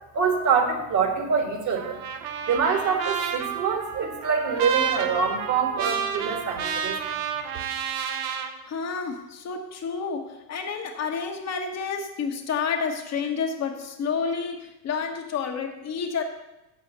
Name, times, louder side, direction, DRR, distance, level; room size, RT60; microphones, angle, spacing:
voice 1, 0.1-2.0 2.5-7.0, right 6 dB, 35° right, 4 dB, 1.7 m, -25 dB
Trumpet, 1.7-8.5, right 7 dB, 60° right, 1.2 m, -30 dB
voice 2, 8.7-16.2, left 5 dB, 30° left, 4 dB, 1.1 m, -30 dB
7.3 x 6.7 x 7.0 m, 0.97 s
figure-of-eight pair, 70°, 50 cm